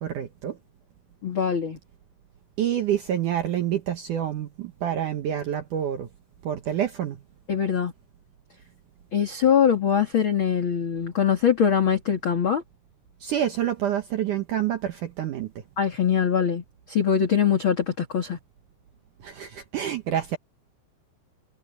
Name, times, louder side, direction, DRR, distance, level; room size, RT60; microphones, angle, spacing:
voice 1, 0.0-0.6 2.6-6.1 6.4-7.2 13.2-15.5 19.2-20.4, right 10 dB, 70° right, 2.0 m, -27 dB
voice 2, 1.2-1.8 7.5-7.9 9.1-12.6 15.8-18.4, left 8 dB, 35° left, 2.5 m, -22 dB
omnidirectional pair, 5.0 m